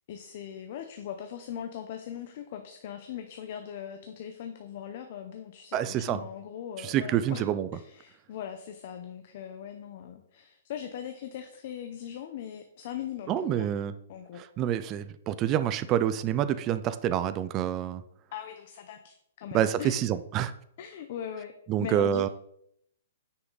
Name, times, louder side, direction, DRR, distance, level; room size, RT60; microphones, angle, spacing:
voice 1, 0.1-7.4 7.7-13.7 14.1-14.4 18.3-20.0 20.8-21.5 21.8-22.3, left 9 dB, 45° left, 6 dB, 0.8 m, -40 dB
voice 2, 5.7-6.2 6.8-7.7 13.3-13.9 14.6-18.0 19.5-20.5 21.7-22.3, right 10 dB, 20° right, 12 dB, 0.4 m, -27 dB
9.7 x 5.8 x 3.9 m, 0.74 s
hypercardioid pair, 165°, 0 cm